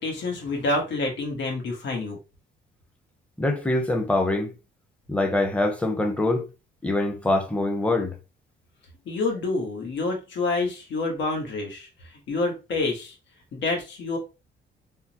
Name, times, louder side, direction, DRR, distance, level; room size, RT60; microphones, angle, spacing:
voice 1, 0.0-2.2 9.0-13.2 13.5-14.2, left 3 dB, 70° left, 1.3 m, -28 dB
voice 2, 3.4-4.5 5.1-6.5 6.8-8.1, left 2 dB, 5° left, 0.8 m, -24 dB
3.5 x 2.1 x 2.9 m
cardioid pair, 90°, 20 cm